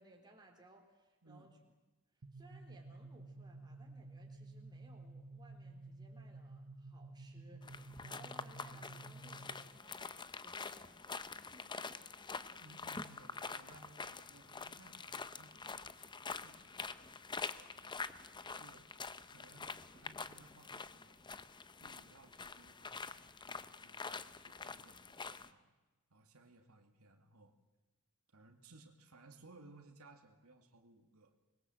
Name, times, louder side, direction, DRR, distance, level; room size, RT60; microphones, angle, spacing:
voice 1, 0.0-1.6 2.1-11.8, right 1 dB, 20° right, 1 dB, 3.9 m, -63 dB
sound 1, 2.2-9.8, right 2 dB, 60° right, 1.0 m, -52 dB
sound 2, 7.6-25.5, left 4 dB, 20° left, 0.8 m, -46 dB
voice 2, 12.6-17.1 17.8-18.1 18.6-18.9 19.3-21.2 21.8-25.7 26.1-27.5 28.3-31.3, right 2 dB, 80° right, 4 dB, 2.3 m, -62 dB
25.5 x 21.5 x 7.8 m, 1.2 s
head